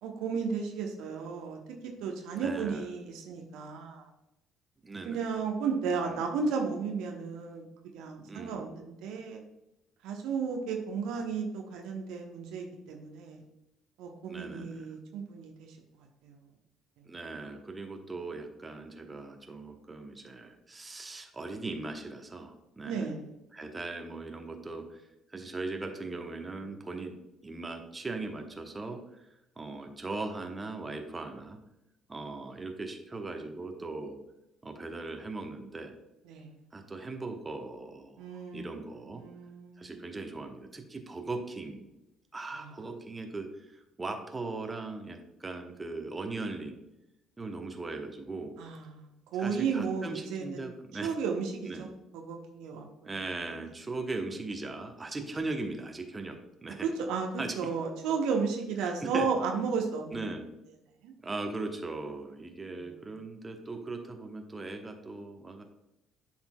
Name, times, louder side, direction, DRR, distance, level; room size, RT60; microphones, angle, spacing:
voice 1, 0.0-4.1 5.0-9.4 10.0-13.4 14.0-15.8 16.2-16.4 22.8-23.2 36.3-36.5 38.2-38.8 39.1-40.0 42.5-42.7 48.6-49.1 49.3-50.7 51.0-53.1 56.8-60.2 61.0-61.1 62.7-62.9, right 5 dB, 60° right, 2 dB, 0.9 m, -34 dB
voice 2, 2.3-2.9 4.8-5.2 6.1-6.2 8.3-8.8 14.3-14.9 17.1-23.1 23.5-25.0 25.3-27.1 27.4-29.3 29.6-31.6 32.1-34.2 34.6-35.9 36.7-38.2 38.5-39.2 39.8-41.9 42.3-46.8 47.4-48.5 49.4-51.1 51.7-51.9 53.0-56.9 57.4-57.7 58.8-59.3 60.1-60.5 61.2-65.6, right 3 dB, 20° right, 4 dB, 1.0 m, -39 dB
11.5 x 4.4 x 2.2 m, 0.91 s
figure-of-eight pair, 50°, 0 cm